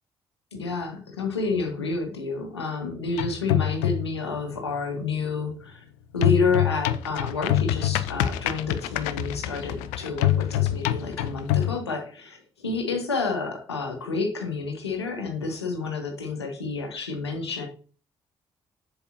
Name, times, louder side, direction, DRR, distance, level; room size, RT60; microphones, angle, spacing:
voice 1, 0.5-5.8 6.1-17.7, left 4 dB, 85° left, 3 dB, 1.2 m, -29 dB
sound 1, 3.1-4.2 6.2-11.8, left 12 dB, 70° left, 0.5 m, -25 dB
8.1 x 7.0 x 2.7 m, 0.39 s
figure-of-eight pair, 40°, 13 cm